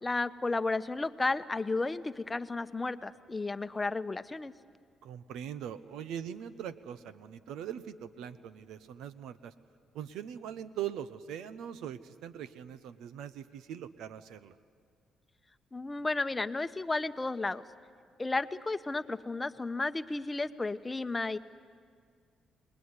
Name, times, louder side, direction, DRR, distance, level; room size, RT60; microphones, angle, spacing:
voice 1, 0.0-4.5 15.7-17.6 18.2-21.4, left 3 dB, 20° left, 12 dB, 0.9 m, -33 dB
voice 2, 5.0-9.5 9.9-14.5, right 9 dB, 85° right, 14 dB, 0.9 m, -41 dB
29.0 x 20.5 x 9.7 m, 2.1 s
cardioid pair, 90°, 0 cm